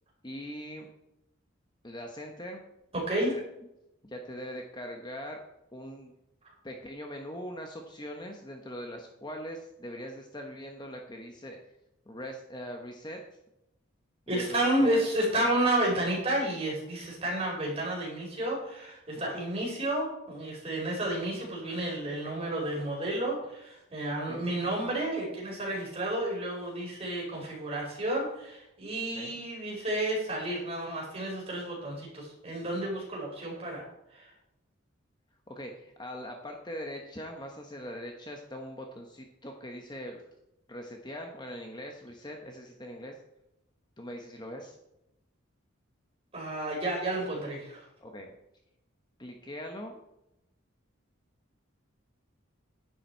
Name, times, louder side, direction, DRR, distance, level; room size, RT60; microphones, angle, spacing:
voice 1, 0.2-0.9 1.8-2.6 3.2-3.4 4.0-5.4 5.7-6.1 6.6-11.6 12.1-13.2 14.3-15.0 19.2-19.4 24.2-24.5 29.1-29.3 35.5-40.2 40.7-43.1 44.0-44.8 48.0-48.3 49.2-50.0, equal, 20° left, 2 dB, 1.0 m, -41 dB
voice 2, 2.9-3.3 14.3-33.8 34.1-34.3 46.3-47.8, right 1 dB, 30° right, -3 dB, 4.9 m, -31 dB
10.5 x 9.9 x 4.5 m, 0.86 s
head